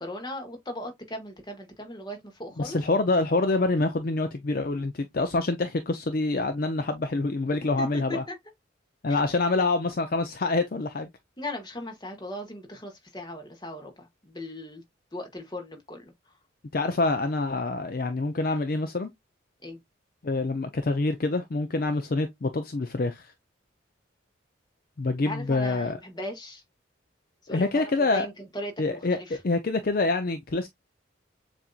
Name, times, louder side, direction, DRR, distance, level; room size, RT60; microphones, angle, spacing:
voice 1, 0.0-2.8 7.8-8.4 9.1-9.5 11.4-14.8 15.1-16.1 19.6-19.8 25.2-26.6 27.4-29.4, left 1 dB, 20° left, 1.2 m, -38 dB
voice 2, 2.6-8.2 9.0-11.1 16.7-19.1 20.2-23.3 25.0-26.0 27.5-28.3 28.8-29.2 29.4-30.7, left 3 dB, 45° left, 0.5 m, -26 dB
7.1 x 2.6 x 2.3 m
head